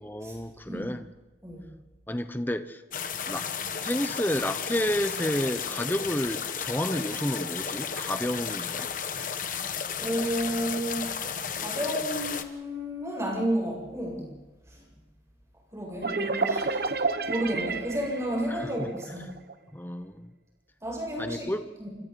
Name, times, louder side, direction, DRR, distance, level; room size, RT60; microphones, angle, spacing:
voice 1, 0.0-1.1 2.1-2.8 3.3-3.5 3.8-8.9 18.5-19.3 19.7-20.3 21.2-21.7, left 1 dB, 10° left, 9 dB, 0.8 m, -31 dB
sound 1, 2.9-12.4, left 7 dB, 45° left, 1.2 m, -33 dB
voice 2, 10.0-11.1 11.5-14.3 14.7-14.9 15.7-16.9 17.3-19.3 20.8-21.5 21.8-21.9, equal, 15° right, -2 dB, 7.8 m, -31 dB
sound 2, 16.0-19.5, right 4 dB, 55° right, 1.1 m, -30 dB
30.0 x 25.5 x 4.2 m, 1.1 s
head